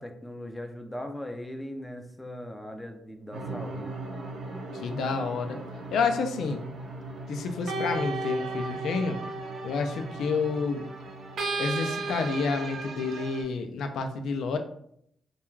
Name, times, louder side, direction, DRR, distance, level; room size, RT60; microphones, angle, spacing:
voice 1, 0.0-3.9, left 1 dB, 10° left, 5 dB, 0.3 m, -39 dB
sound 1, 3.3-13.4, right 3 dB, 70° right, 0.6 m, -35 dB
voice 2, 4.8-5.6 5.9-6.6 7.3-9.2 9.6-10.8 11.6-14.6, left 4 dB, 85° left, 6 dB, 0.3 m, -29 dB
2.3 x 2.2 x 3.1 m, 0.69 s
cardioid pair, 110°, 0 cm